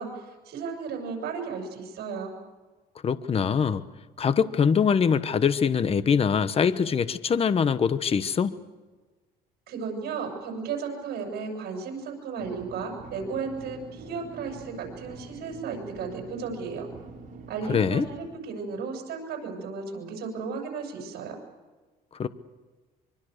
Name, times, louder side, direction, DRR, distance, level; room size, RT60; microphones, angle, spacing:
voice 1, 0.0-2.3 9.7-16.9 17.5-21.4, right 5 dB, 70° right, 3 dB, 7.3 m, -34 dB
voice 2, 3.0-3.8 4.2-8.5 17.7-18.1 22.2-22.3, left 6 dB, 35° left, 13 dB, 1.1 m, -23 dB
sound 1, 12.4-18.2, right 4 dB, 55° right, 6.4 m, -45 dB
25.0 x 24.5 x 6.7 m, 1.3 s
cardioid pair, 110°, 17 cm